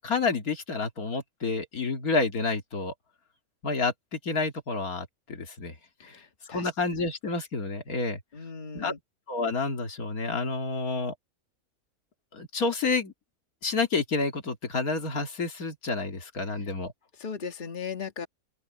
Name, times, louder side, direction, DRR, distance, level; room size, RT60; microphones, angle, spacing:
voice 1, 0.0-2.9 3.6-5.7 6.0-6.2 6.5-8.2 8.7-8.9 9.3-11.1 12.3-13.1 13.6-16.9, left 3 dB, 85° left, 2.6 m, -29 dB
voice 2, 6.0-6.7 8.3-9.0 16.4-16.7 17.1-18.3, left 6 dB, 35° left, 1.7 m, -38 dB
open air
omnidirectional pair, 1.5 m